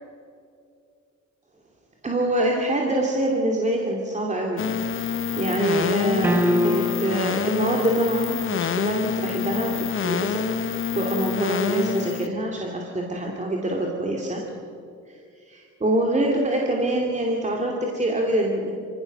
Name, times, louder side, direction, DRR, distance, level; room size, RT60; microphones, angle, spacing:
voice 1, 2.0-4.8 5.4-9.7 10.0-10.4 11.0-14.4 15.1-15.2 15.5-18.7, right 1 dB, 25° right, -1 dB, 2.6 m, -25 dB
sound 1, 4.6-12.3, left 7 dB, 45° left, 1.0 m, -27 dB
sound 2, 6.2-7.3, left 1 dB, 5° right, 1.0 m, -23 dB
24.0 x 16.5 x 6.6 m, 2.3 s
cardioid pair, 90°, 30 cm